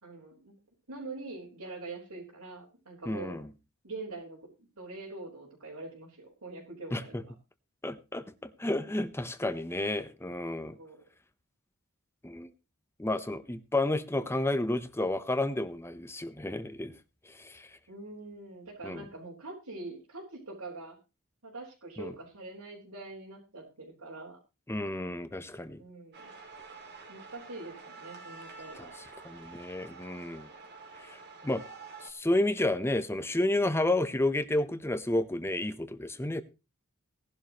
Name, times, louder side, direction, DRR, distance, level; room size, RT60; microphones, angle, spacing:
voice 1, 0.0-0.5 0.9-3.4 3.8-4.5 4.8-7.3 10.7-11.0 17.9-21.0 21.4-24.4 25.8-26.3 27.1-29.0, right 2 dB, 90° right, -6 dB, 4.7 m, -44 dB
voice 2, 3.1-3.5 6.9-7.2 7.8-10.8 12.2-12.5 13.0-16.9 17.3-17.7 18.8-19.0 22.0-22.1 24.7-25.8 29.2-30.5 31.0-31.2 31.4-31.6 32.0-36.4, left 1 dB, 10° left, 12 dB, 0.9 m, -31 dB
sound 1, 26.1-32.1, right 4 dB, 50° right, 2.9 m, -48 dB
18.0 x 11.5 x 3.1 m, 0.28 s
head